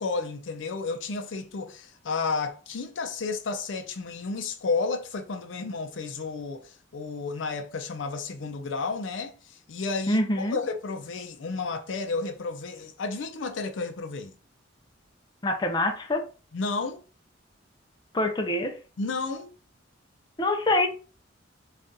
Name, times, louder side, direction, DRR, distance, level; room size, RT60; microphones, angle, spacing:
voice 1, 0.0-14.3 16.5-17.0 19.0-19.5, left 4 dB, 80° left, 0.5 m, -32 dB
voice 2, 10.1-10.6 15.4-16.3 18.1-18.8 20.4-20.9, left 1 dB, 25° left, 0.5 m, -25 dB
3.6 x 2.4 x 2.6 m
head